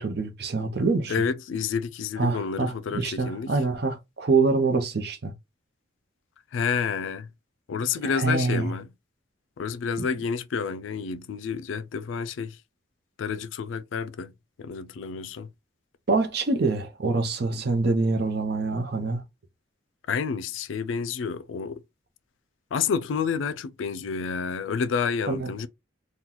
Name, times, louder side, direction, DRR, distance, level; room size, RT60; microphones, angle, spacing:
voice 1, 0.0-1.2 2.2-5.3 8.0-8.7 16.1-19.2 25.3-25.5, right 3 dB, 55° right, 0.6 m, -25 dB
voice 2, 1.1-3.5 6.5-7.3 7.7-8.9 9.6-12.6 13.2-14.3 14.6-15.5 20.1-21.8 22.7-25.7, left 6 dB, 85° left, 0.4 m, -29 dB
3.8 x 2.2 x 2.9 m
head